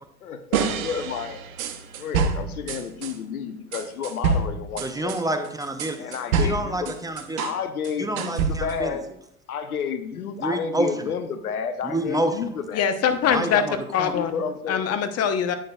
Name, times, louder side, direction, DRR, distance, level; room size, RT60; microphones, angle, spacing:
voice 1, 0.2-1.4 2.0-5.2 6.0-6.9 7.4-9.0 9.5-13.0 14.1-14.8, left 6 dB, 85° left, 10 dB, 0.9 m, -31 dB
sound 1, 0.5-3.1 3.7-7.6 7.8-8.9, right 5 dB, 70° right, 1.1 m, -27 dB
voice 2, 4.8-6.0 6.4-7.4 8.0-9.0 10.4-11.1 11.9-12.4 13.3-14.1, right 1 dB, 10° right, 6 dB, 0.8 m, -28 dB
voice 3, 12.7-13.6 13.9-14.3 14.7-15.6, left 8 dB, 35° left, 9 dB, 1.0 m, -22 dB
11.0 x 8.8 x 2.4 m, 0.74 s
hypercardioid pair, 85°, 43 cm